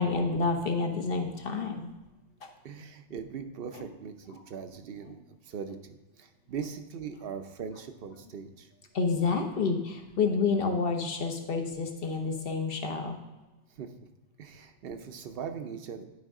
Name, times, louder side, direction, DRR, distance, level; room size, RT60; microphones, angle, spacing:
voice 1, 0.0-1.9 2.4-2.5 3.7-3.9 4.3-4.4 8.9-13.2, left 4 dB, 55° left, 4 dB, 1.1 m, -29 dB
voice 2, 2.6-8.7 13.8-13.9 14.4-16.1, right 6 dB, 60° right, 8 dB, 0.8 m, -40 dB
11.5 x 5.0 x 3.6 m, 1.1 s
omnidirectional pair, 1.2 m